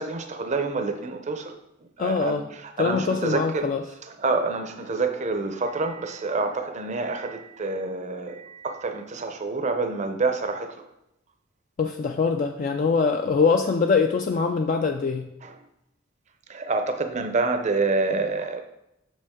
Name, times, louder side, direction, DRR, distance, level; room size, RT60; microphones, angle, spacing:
voice 1, 0.0-1.6 2.0-3.7 4.0-10.8 15.4-15.6 16.5-18.6, right 3 dB, 35° right, 7 dB, 0.6 m, -27 dB
voice 2, 2.0-2.5 2.8-3.8 11.8-15.3, left 5 dB, 40° left, 4 dB, 0.3 m, -23 dB
6.7 x 5.3 x 3.6 m, 0.86 s
head